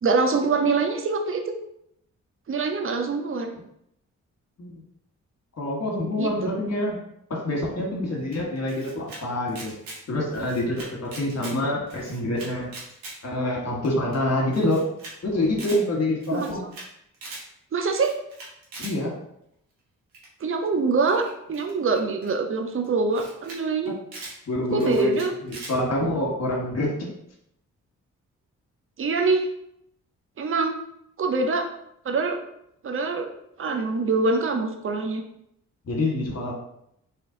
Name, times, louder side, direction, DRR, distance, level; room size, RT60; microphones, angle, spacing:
voice 1, 0.0-1.5 2.5-3.5 6.2-6.5 16.3-16.5 17.7-18.1 20.4-21.2 21.5-23.9 24.7-25.3 29.0-29.4 30.4-30.8 31.2-31.7 32.0-32.4 32.8-33.3 33.6-35.2, right 4 dB, 40° right, 4 dB, 0.7 m, -24 dB
voice 2, 5.6-7.0 7.3-9.7 10.1-12.7 13.2-14.8 15.2-16.6 18.8-19.1 24.5-27.1 35.9-36.5, left 1 dB, 50° left, -2 dB, 1.3 m, -26 dB
Camera, 8.3-9.2 9.5-10.0 10.3-11.5 11.9-13.1 13.5-13.6 13.8-13.9 14.1-14.2 14.5-15.1 15.4-15.8 16.2-16.9 17.1-17.4 17.9-18.9 20.1-20.4 21.0-22.3 22.8-22.9 23.1-23.6 23.8-24.3 24.8-25.7, right 2 dB, 80° right, 1.2 m, -41 dB
3.1 x 2.9 x 3.7 m, 0.76 s
supercardioid pair, 45°, 34 cm